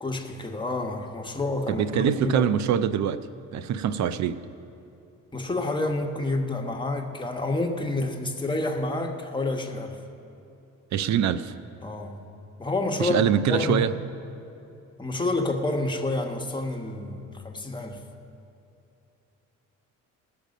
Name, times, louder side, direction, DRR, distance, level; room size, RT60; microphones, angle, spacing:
voice 1, 0.0-2.5 5.3-10.0 11.8-12.2 12.6-13.2 13.5-13.9 15.0-18.0, left 2 dB, 15° left, 2 dB, 1.2 m, -28 dB
voice 2, 1.8-3.2 3.5-4.4 10.9-11.5 13.0-13.9, right 9 dB, 65° right, 14 dB, 0.6 m, -24 dB
19.5 x 6.8 x 5.2 m, 2.8 s
cardioid pair, 90°, 30 cm